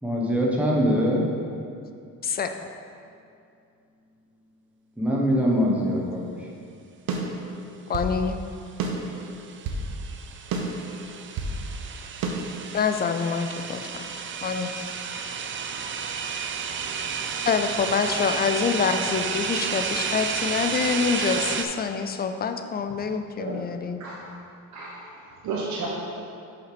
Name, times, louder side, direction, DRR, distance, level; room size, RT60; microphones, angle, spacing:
voice 1, 0.0-1.3 5.0-6.5, equal, 5° right, -3 dB, 1.2 m, -23 dB
voice 2, 2.2-2.5 7.9-8.4 12.7-14.0 14.4-14.7 17.4-24.0, left 6 dB, 30° left, 7 dB, 0.4 m, -26 dB
sound 1, 7.1-8.2 8.8-9.9 10.5-11.6 12.2-12.3, right 3 dB, 85° right, 0.9 m, -30 dB
sound 2, 9.1-21.6, right 6 dB, 35° right, 0.5 m, -31 dB
voice 3, 23.3-23.7 24.0-24.3 24.7-26.2, right 3 dB, 60° right, -4 dB, 1.1 m, -33 dB
5.7 x 5.6 x 5.0 m, 2.5 s
cardioid pair, 115°, 33 cm